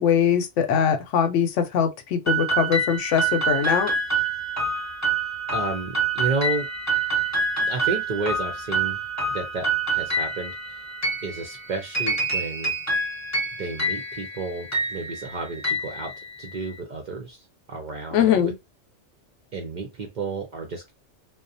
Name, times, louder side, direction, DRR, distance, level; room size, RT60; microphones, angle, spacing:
voice 1, 0.0-3.9 18.1-18.5, left 8 dB, 80° left, 0.9 m, -22 dB
sound 1, 2.3-16.7, right 3 dB, 15° left, 0.8 m, -27 dB
voice 2, 5.5-6.7 7.7-9.0 9.3-10.9 11.2-12.7 13.6-16.1 16.4-18.5 19.5-20.9, right 3 dB, 60° right, 0.5 m, -32 dB
2.4 x 2.1 x 2.6 m
omnidirectional pair, 1.2 m